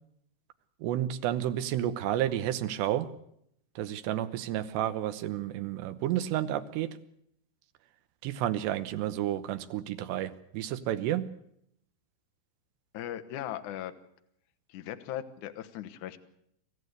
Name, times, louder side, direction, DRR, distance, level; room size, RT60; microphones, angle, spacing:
voice 1, 0.8-3.1 3.8-7.0 8.2-11.3, right 12 dB, 75° right, 11 dB, 3.0 m, -31 dB
voice 2, 12.9-13.9 14.7-16.2, left 11 dB, 65° left, 8 dB, 2.0 m, -38 dB
27.0 x 14.5 x 8.1 m, 0.74 s
omnidirectional pair, 5.2 m